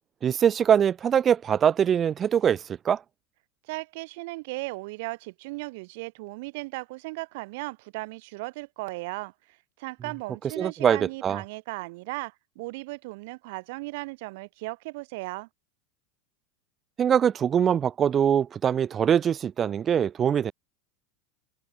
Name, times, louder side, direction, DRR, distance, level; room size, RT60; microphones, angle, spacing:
voice 1, 0.2-3.0 10.6-11.4 17.0-20.5, right 8 dB, 25° right, 1.2 m, -23 dB
voice 2, 3.6-15.5, right 24 dB, 65° right, 4.9 m, -37 dB
supercardioid pair, 140°, 0 cm